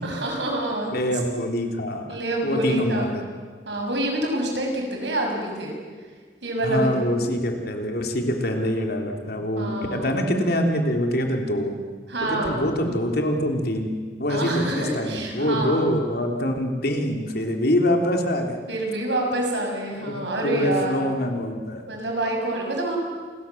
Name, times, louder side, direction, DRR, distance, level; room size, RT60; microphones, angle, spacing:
voice 1, 0.0-1.0 2.1-3.1 3.6-5.8 6.4-7.1 9.6-10.1 12.1-12.6 14.3-15.8 18.7-21.1 21.9-23.0, right 1 dB, 80° right, 1 dB, 6.8 m, -27 dB
voice 2, 0.9-2.1 2.4-3.2 6.6-11.8 12.2-13.9 14.2-18.6 20.0-20.2 20.4-21.8, equal, 60° left, 3 dB, 3.3 m, -24 dB
28.5 x 21.5 x 7.2 m, 1.5 s
head